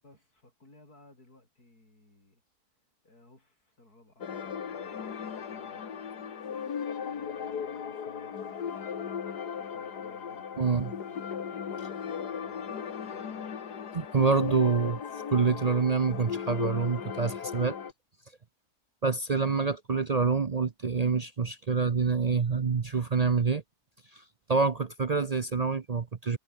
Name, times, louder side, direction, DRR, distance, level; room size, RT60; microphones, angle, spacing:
voice 1, 0.0-2.4 3.0-5.9 7.0-8.7 9.5-11.2 11.5-13.5, left 2 dB, 70° left, 8.5 m, -60 dB
sound 1, 4.2-17.9, left 7 dB, 85° left, 2.2 m, -37 dB
voice 2, 10.6-10.9 13.9-15.0 15.3-17.8 19.0-23.6 24.1-24.2 24.5-26.4, right 5 dB, 45° right, 0.5 m, -26 dB
omnidirectional pair, 1.7 m